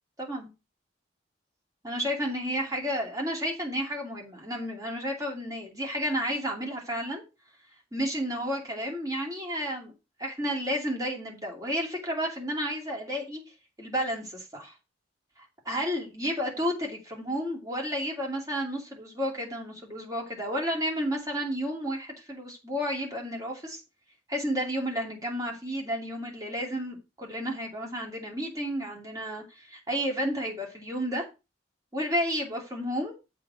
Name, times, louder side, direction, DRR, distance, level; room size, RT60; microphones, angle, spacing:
voice 1, 0.2-0.5 1.8-7.2 7.9-9.9 10.2-13.4 13.8-14.7 15.6-23.8 24.3-31.3 31.9-33.1, equal, 20° right, 2.6 m, -31 dB
7.5 x 4.2 x 5.9 m
head